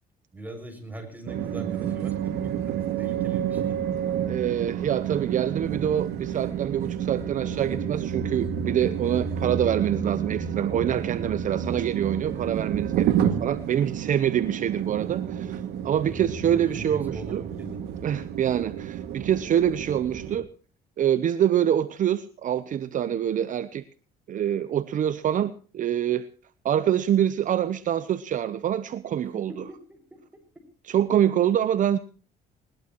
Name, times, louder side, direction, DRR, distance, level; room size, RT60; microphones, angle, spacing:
voice 1, 0.3-3.8 15.9-17.8 29.5-30.2, right 1 dB, 10° right, 5 dB, 6.5 m, -41 dB
sound 1, 1.3-20.4, right 9 dB, 80° right, 2.2 m, -30 dB
voice 2, 4.3-15.6 15.8-17.4 18.0-20.5 21.0-23.8 24.3-26.3 26.6-29.5 30.9-32.0, right 10 dB, 50° right, 13 dB, 0.8 m, -25 dB
20.5 x 20.0 x 3.0 m, 0.39 s
cardioid pair, 110°, 17 cm